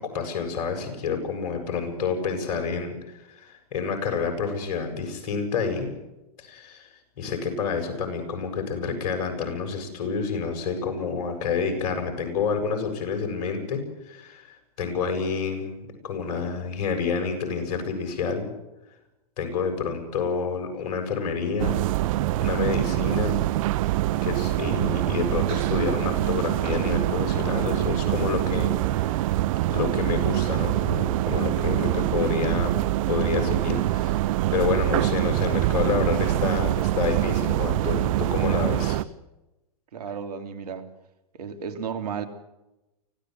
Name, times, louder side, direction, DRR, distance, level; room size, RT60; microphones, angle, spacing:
voice 1, 0.0-5.9 6.4-6.9 7.2-18.5 19.4-21.8 22.4-23.4 24.2-29.3 29.7-34.2 34.5-39.0, left 5 dB, 55° left, 7.6 m, -29 dB
sound 1, 21.6-39.0, right 15 dB, 55° right, 0.9 m, -24 dB
voice 2, 39.9-40.9 41.3-42.3, right 7 dB, 75° right, 3.2 m, -33 dB
25.0 x 17.5 x 8.1 m
hypercardioid pair, 110°, 20 cm